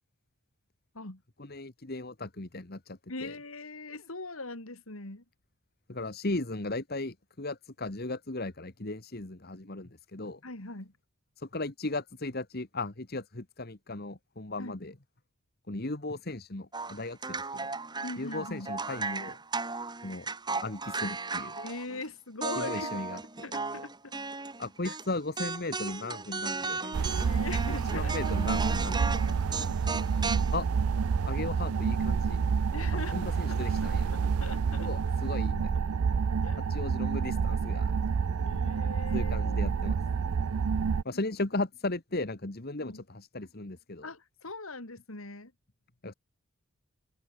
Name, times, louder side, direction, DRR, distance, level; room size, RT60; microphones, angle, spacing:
voice 1, 1.4-3.4 5.9-10.4 11.4-14.9 15.7-17.7 18.2-19.4 20.0-20.3 20.6-21.6 22.6-23.2 24.6-27.4 27.7-29.4 30.5-30.7 31.3-32.6 32.9-34.1 34.8-35.7 36.7-37.9 39.1-40.0 41.0-44.1 46.0-46.1, left 2 dB, 45° left, 1.5 m, -36 dB
voice 2, 3.1-5.2 10.4-10.9 14.6-14.7 18.0-18.7 21.6-24.2 24.8-25.0 27.2-28.1 29.3-29.4 29.6-30.0 32.7-34.9 36.4-36.6 38.4-39.6 42.8-43.0 44.0-45.5, left 2 dB, 75° left, 3.2 m, -41 dB
sound 1, 16.7-22.1 22.4-25.0 25.4-30.6, right 3 dB, 20° right, 4.3 m, -36 dB
sound 2, 26.9-41.0, right 5 dB, 90° right, 0.5 m, -28 dB
head